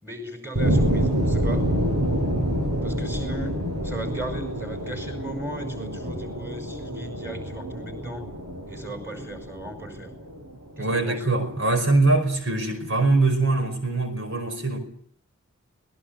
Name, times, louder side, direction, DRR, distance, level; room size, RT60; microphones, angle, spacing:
voice 1, 0.0-1.7 2.8-3.6 3.8-8.3 8.7-10.1 10.8-11.2, right 1 dB, 10° right, 5.5 m, -37 dB
sound 1, 0.5-11.3, equal, 90° right, 6.3 m, -27 dB
voice 2, 10.8-14.8, right 2 dB, 60° right, 5.1 m, -22 dB
26.5 x 20.0 x 8.0 m
head